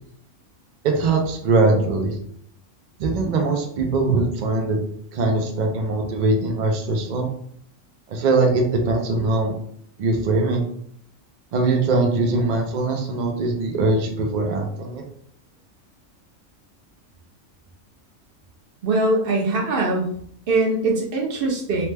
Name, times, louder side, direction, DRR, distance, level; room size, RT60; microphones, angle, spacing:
voice 1, 0.8-2.2 3.0-4.8 5.1-7.3 8.1-9.5 10.0-10.6 11.5-15.0, right 3 dB, 80° right, 2 dB, 0.4 m, -21 dB
voice 2, 18.8-20.1 20.5-21.9, right 2 dB, 55° right, 0 dB, 0.8 m, -22 dB
2.9 x 2.1 x 3.2 m, 0.64 s
omnidirectional pair, 1.4 m